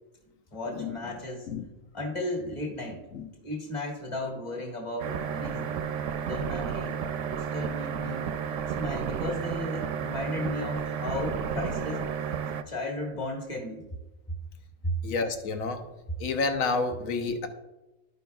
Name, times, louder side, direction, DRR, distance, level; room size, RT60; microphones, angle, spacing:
voice 1, 0.5-1.5 1.9-3.1 3.4-5.8 6.2-7.0 7.4-8.3 8.8-12.1 12.7-13.8 14.8-15.0, left 1 dB, 20° left, -2 dB, 1.6 m, -34 dB
sound 1, 5.0-12.6, right 7 dB, 70° right, 0.9 m, -32 dB
voice 2, 15.0-15.9 16.2-17.5, left 4 dB, 75° left, 6 dB, 1.2 m, -29 dB
13.5 x 5.4 x 2.3 m, 1.0 s
omnidirectional pair, 1.4 m